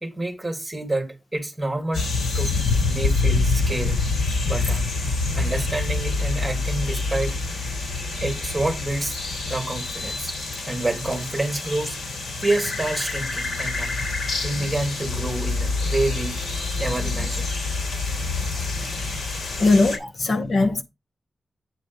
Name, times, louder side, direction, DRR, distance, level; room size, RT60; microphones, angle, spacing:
voice 1, 0.0-2.1 2.3-4.0 4.4-7.4 8.2-9.2 9.4-10.4 10.7-14.0 14.4-16.4 16.8-17.5 18.3-18.4 20.0-20.1, right 2 dB, 10° right, 2.3 m, -28 dB
sound 1, 1.9-20.0, left 3 dB, 80° left, 3.5 m, -26 dB
voice 2, 19.6-20.8, left 3 dB, 45° left, 0.8 m, -20 dB
9.2 x 4.1 x 5.2 m
wide cardioid pair, 175°, 0 cm